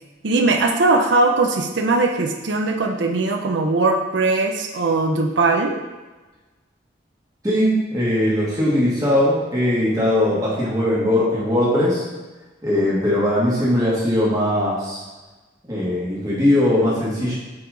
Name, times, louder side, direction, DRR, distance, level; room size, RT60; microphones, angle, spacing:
voice 1, 0.2-5.8, right 3 dB, 85° right, 3 dB, 0.7 m, -20 dB
voice 2, 7.4-12.0 12.6-15.0 15.7-17.3, left 1 dB, 20° right, -8 dB, 2.3 m, -20 dB
8.7 x 4.8 x 3.9 m, 1.2 s
head